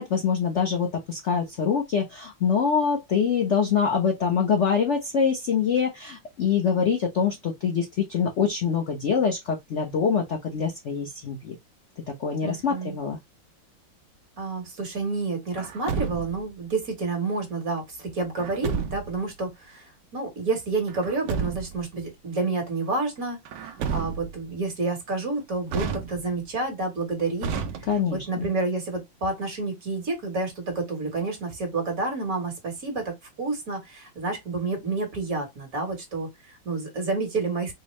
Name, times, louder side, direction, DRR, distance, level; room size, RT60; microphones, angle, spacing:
voice 1, 0.0-11.5 12.1-13.2 27.9-28.5, left 6 dB, 65° left, 0.7 m, -25 dB
voice 2, 12.4-13.0 14.4-27.5 28.1-37.7, right 3 dB, 50° right, 1.6 m, -29 dB
Truck, 15.6-16.5 18.4-19.2 20.9-21.9 23.5-24.5 25.7-26.5 27.4-28.3, right 6 dB, 70° right, 1.2 m, -31 dB
4.5 x 2.0 x 3.1 m
omnidirectional pair, 2.1 m